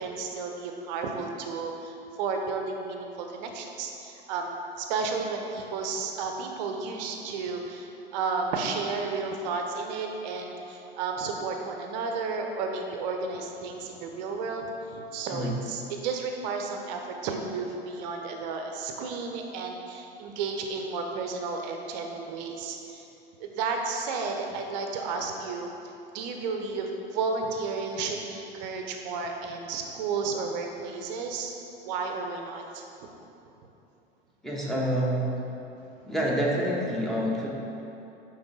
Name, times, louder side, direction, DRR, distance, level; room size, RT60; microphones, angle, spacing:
voice 1, 0.0-23.1 23.4-25.7 26.1-31.5 31.8-32.8, right 4 dB, 45° right, 3 dB, 0.7 m, -32 dB
voice 2, 34.4-35.3 36.0-37.5, equal, ahead, -5 dB, 1.0 m, -27 dB
8.9 x 3.3 x 3.6 m, 2.9 s
figure-of-eight pair, 85°, 31 cm